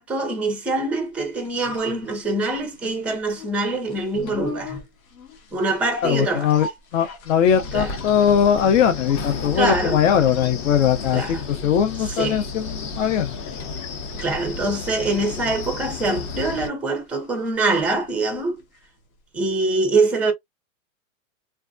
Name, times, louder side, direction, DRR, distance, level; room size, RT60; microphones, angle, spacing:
voice 1, 0.0-4.8 5.5-6.5 7.7-7.9 9.6-10.0 11.1-11.4 12.2-12.4 14.1-18.6 19.3-20.3, right 2 dB, 5° right, 0.4 m, -24 dB
sound 1, 1.1-19.1 19.3-19.4, left 3 dB, 90° left, 1.2 m, -41 dB
voice 2, 6.0-6.7 6.9-13.3, left 8 dB, 65° left, 0.7 m, -20 dB
Wind, 7.5-16.7, left 4 dB, 30° left, 0.7 m, -32 dB
3.4 x 2.0 x 2.5 m
hypercardioid pair, 140°, 40 cm